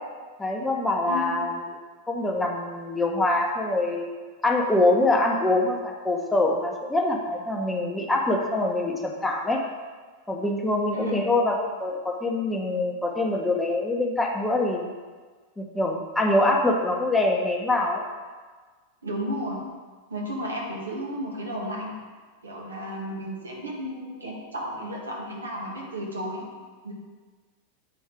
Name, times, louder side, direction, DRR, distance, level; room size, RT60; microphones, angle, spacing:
voice 1, 0.4-1.7 2.1-4.1 4.4-9.6 10.3-14.8 15.6-18.0, left 2 dB, 10° left, 0 dB, 1.0 m, -24 dB
voice 2, 19.0-19.7 20.1-21.9 22.4-26.4 26.8-26.9, equal, 75° right, -2 dB, 1.5 m, -33 dB
8.2 x 4.5 x 4.9 m, 1.4 s
figure-of-eight pair, 90°, 0 cm